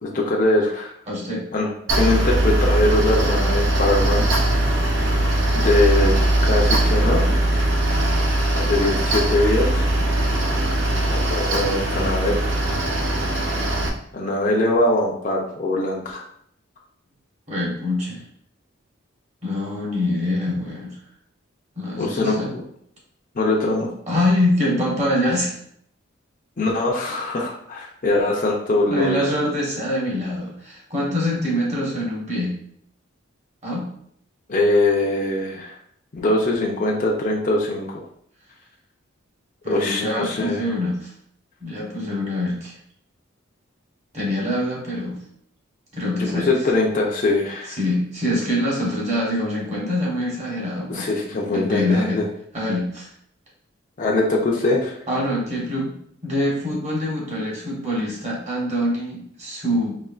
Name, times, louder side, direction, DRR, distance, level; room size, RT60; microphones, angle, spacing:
voice 1, 0.0-0.9 1.5-4.3 5.5-7.3 8.5-9.8 11.1-12.4 14.1-16.2 22.0-22.4 23.4-23.9 26.6-29.3 34.5-35.8 36.1-38.0 39.7-40.6 46.2-47.8 50.9-52.2 54.0-54.9, left 2 dB, 40° left, -2 dB, 0.5 m, -22 dB
voice 2, 1.1-1.4 17.5-18.3 19.4-21.0 21.8-22.6 24.1-25.5 28.9-32.5 33.6-33.8 39.6-41.1 41.6-42.7 44.1-45.2 45.9-46.5 47.8-51.1 51.5-52.2 52.5-53.1 55.1-55.9 56.2-60.0, left 1 dB, 35° right, -4 dB, 1.1 m, -24 dB
Mechanical fan, 1.9-13.9, right 1 dB, 60° right, 0.6 m, -20 dB
4.3 x 2.9 x 2.4 m, 0.67 s
head